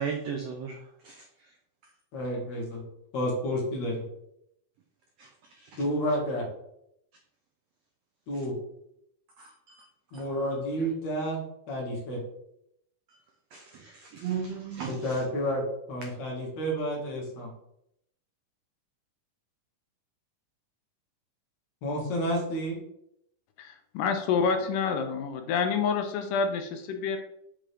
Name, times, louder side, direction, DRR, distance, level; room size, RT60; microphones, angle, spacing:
voice 1, 0.0-1.6 5.2-5.8 8.3-8.4 9.4-9.9 10.1-10.3 13.1-13.2 13.5-15.2, right 7 dB, 90° right, 2 dB, 1.4 m, -37 dB
voice 2, 2.1-2.8 3.1-4.0 5.8-6.5 8.3-8.5 10.1-11.4 11.7-12.2 15.0-15.6 15.9-17.5 21.8-22.8, equal, 60° left, -3 dB, 2.7 m, -30 dB
voice 3, 23.6-27.2, left 5 dB, 80° left, 6 dB, 2.3 m, -28 dB
7.7 x 3.7 x 3.4 m, 0.76 s
omnidirectional pair, 3.8 m